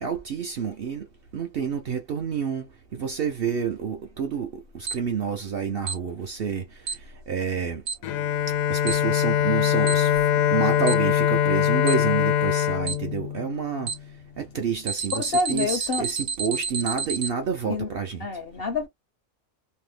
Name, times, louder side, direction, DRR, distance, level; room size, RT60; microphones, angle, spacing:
voice 1, 0.0-1.0 1.3-2.7 2.9-6.6 7.3-7.8 8.7-10.2 10.5-13.9 14.4-18.3, right 6 dB, 60° right, 0.6 m, -29 dB
Alarm, 4.9-5.0 5.9-6.0 6.9-7.0 7.9-8.0 8.9-9.0 9.9-10.0 10.9-11.0 11.9-12.0 12.9-13.0 13.9-14.0 14.9-17.3, right 5 dB, 75° right, 1.0 m, -29 dB
Bowed string instrument, 8.0-14.0, left 10 dB, 80° left, 1.0 m, -23 dB
voice 2, 15.1-16.0 17.7-17.9 18.2-18.9, left 3 dB, 65° left, 0.6 m, -27 dB
2.8 x 2.0 x 3.2 m
omnidirectional pair, 1.4 m